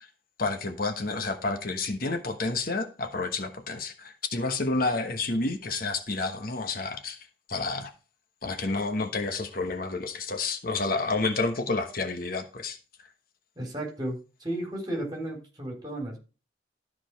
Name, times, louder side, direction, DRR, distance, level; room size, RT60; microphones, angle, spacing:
voice 1, 0.4-7.2 7.5-7.9 8.4-12.8, left 3 dB, 50° left, 1.2 m, -30 dB
voice 2, 13.6-16.2, right 1 dB, 20° right, 3.6 m, -34 dB
12.5 x 5.0 x 4.7 m
head